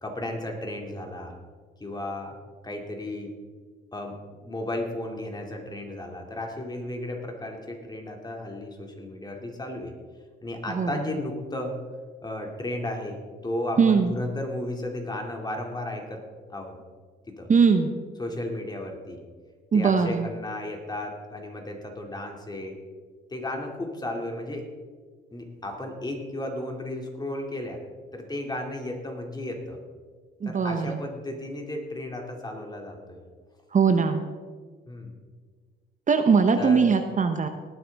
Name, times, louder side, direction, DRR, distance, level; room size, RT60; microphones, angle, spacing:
voice 1, 0.0-1.3 1.8-2.4 2.6-3.3 3.9-9.9 10.4-11.7 12.2-16.2 16.5-16.8 17.3-17.5 18.2-19.2 19.7-22.8 23.3-24.7 25.3-27.8 28.1-29.8 30.4-33.2 33.9-34.0 34.9-35.2 36.6-36.9, left 1 dB, 20° left, 2 dB, 2.5 m, -34 dB
voice 2, 13.8-14.1 17.5-17.9 19.7-20.2 30.4-31.0 33.7-34.2 36.1-37.5, right 5 dB, 40° right, 7 dB, 0.9 m, -20 dB
18.5 x 9.4 x 3.5 m, 1.5 s
cardioid pair, 90°, 20 cm